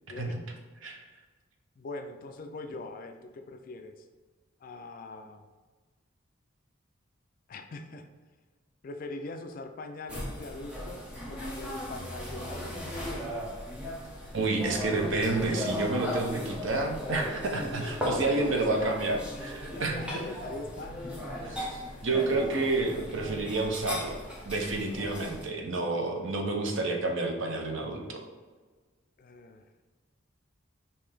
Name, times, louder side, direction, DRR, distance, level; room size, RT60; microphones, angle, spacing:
voice 1, 0.1-0.5 1.8-4.0 4.6-5.5 7.5-8.1 8.8-12.8 14.0-14.3 18.1-18.8 19.6-21.0 29.2-29.6, left 2 dB, 45° left, 7 dB, 0.3 m, -42 dB
sound 1, 10.1-25.4, left 1 dB, 5° right, 0.8 m, -37 dB
voice 2, 14.3-20.2 21.4-24.2 24.4-28.2, right 2 dB, 65° right, 2 dB, 0.7 m, -30 dB
5.5 x 2.7 x 3.4 m, 1.4 s
head